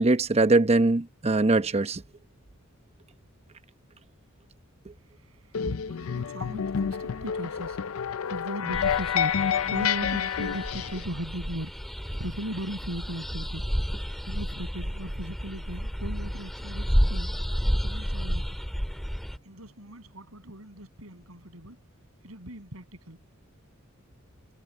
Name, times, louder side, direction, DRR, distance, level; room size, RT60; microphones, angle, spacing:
voice 1, 0.0-2.0, right 2 dB, 30° right, 0.8 m, -22 dB
voice 2, 5.2-7.8 8.3-9.4 9.7-11.8 12.2-13.6 14.2-17.3 17.6-18.6 19.4-21.8 22.2-23.2, right 1 dB, 85° right, 7.2 m, -38 dB
sound 1, 5.5-11.0, left 8 dB, 75° left, 0.5 m, -29 dB
sound 2, 8.7-19.4, equal, ahead, 1.9 m, -31 dB
head